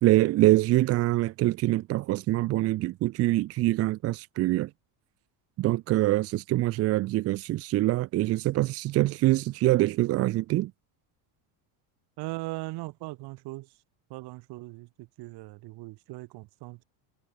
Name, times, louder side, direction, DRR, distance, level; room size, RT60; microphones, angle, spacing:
voice 1, 0.0-4.7 5.6-10.7, right 17 dB, 30° right, 0.5 m, -24 dB
voice 2, 12.2-13.7 14.1-16.8, right 21 dB, 50° right, 5.0 m, -39 dB
cardioid pair, 165°, 48 cm